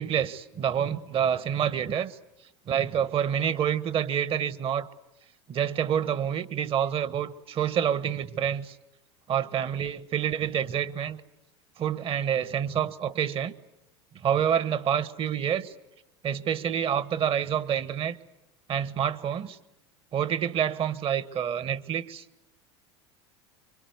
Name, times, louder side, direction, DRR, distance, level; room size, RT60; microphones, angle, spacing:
voice 1, 0.0-2.2 2.7-4.9 5.5-8.8 9.3-11.2 11.8-13.5 14.1-15.7 16.2-18.2 18.7-19.6 20.1-22.2, right 9 dB, 40° right, 1.3 m, -27 dB
26.0 x 23.5 x 9.5 m
hypercardioid pair, 85°, 14 cm